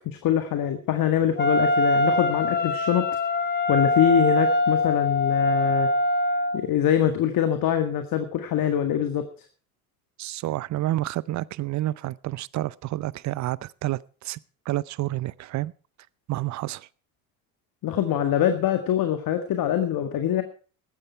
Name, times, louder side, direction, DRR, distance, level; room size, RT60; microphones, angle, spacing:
voice 1, 0.1-3.1 3.7-5.9 6.5-9.3 17.8-20.4, left 10 dB, 50° left, 1.9 m, -24 dB
Wind instrument woodwind instrument, 1.4-6.6, left 2 dB, 25° left, 2.1 m, -23 dB
voice 2, 10.2-14.4 14.7-15.7 16.3-16.9, right 15 dB, 40° right, 0.6 m, -29 dB
15.0 x 12.0 x 4.5 m
hypercardioid pair, 75°, 45 cm